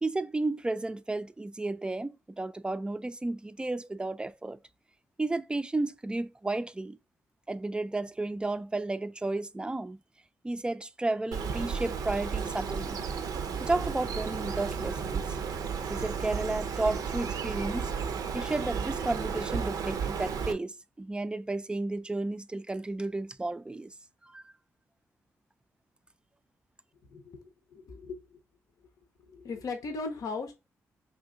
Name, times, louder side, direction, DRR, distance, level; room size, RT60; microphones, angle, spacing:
voice 1, 0.0-4.6 5.2-7.0 7.5-10.0 10.4-13.0 13.6-15.2 15.9-17.9 18.3-23.9 24.2-24.4, right 2 dB, 15° right, 0.3 m, -32 dB
Bird, 11.3-20.5, right 6 dB, 75° right, 0.5 m, -33 dB
voice 2, 27.1-28.4 29.3-30.5, left 4 dB, 65° left, 0.7 m, -38 dB
2.7 x 2.7 x 3.6 m
supercardioid pair, 45°, 6 cm